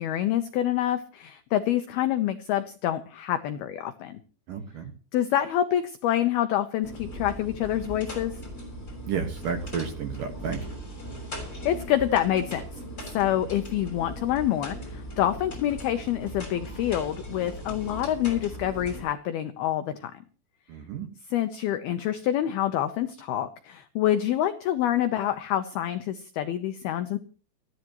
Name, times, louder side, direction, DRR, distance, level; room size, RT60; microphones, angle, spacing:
voice 1, 0.0-4.2 5.1-8.4 11.7-20.1 21.3-27.2, left 11 dB, 80° left, 9 dB, 2.2 m, -27 dB
voice 2, 4.5-4.9 9.1-10.6 20.7-21.1, right 6 dB, 60° right, 6 dB, 2.5 m, -32 dB
sound 1, 6.8-19.0, equal, 15° left, 7.1 m, -39 dB
29.0 x 11.0 x 3.0 m, 0.36 s
omnidirectional pair, 5.7 m